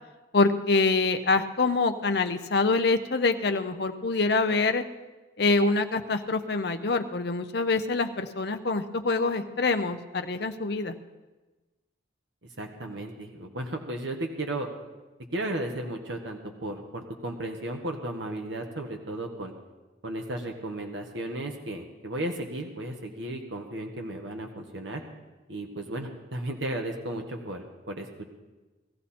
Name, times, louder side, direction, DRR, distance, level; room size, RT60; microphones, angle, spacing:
voice 1, 0.3-4.8 5.4-10.9, left 3 dB, 55° left, 7 dB, 0.7 m, -25 dB
voice 2, 12.6-14.7 15.3-19.5 20.0-25.0 25.5-28.1, right 1 dB, 70° right, 3 dB, 1.4 m, -34 dB
18.5 x 14.0 x 4.3 m, 1.2 s
head